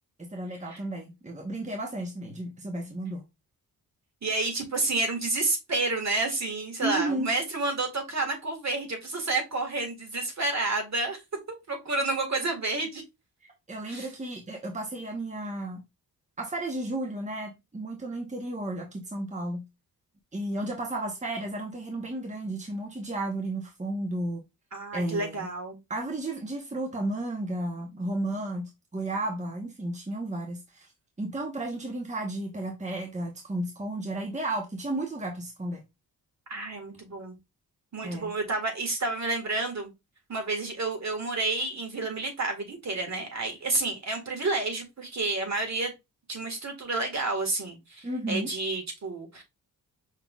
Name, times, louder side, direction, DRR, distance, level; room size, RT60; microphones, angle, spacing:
voice 1, 0.2-3.2 6.8-7.3 13.7-15.8 16.4-19.6 20.3-24.4 24.9-25.5 25.9-30.9 31.2-35.8 38.0-38.3 48.0-48.5, right 1 dB, 20° right, 1.1 m, -33 dB
voice 2, 4.2-11.2 11.5-13.0 13.9-14.1 24.7-25.8 36.5-37.4 37.9-39.9 40.3-45.9 46.3-49.4, right 2 dB, 45° right, 1.9 m, -30 dB
5.7 x 3.4 x 2.4 m
cardioid pair, 65°, 37 cm